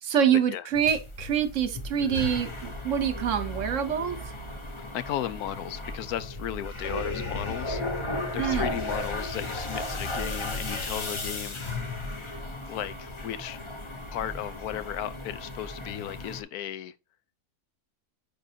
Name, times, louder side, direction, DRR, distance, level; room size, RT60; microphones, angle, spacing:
voice 1, 0.0-4.2 8.3-8.8, right 8 dB, 55° right, 1.1 m, -26 dB
sound 1, 0.7-16.4, left 2 dB, 25° left, 0.7 m, -35 dB
voice 2, 4.9-7.8 8.3-11.7 12.7-13.6 14.1-16.9, left 11 dB, 75° left, 1.1 m, -35 dB
9.2 x 3.8 x 2.8 m
omnidirectional pair, 1.7 m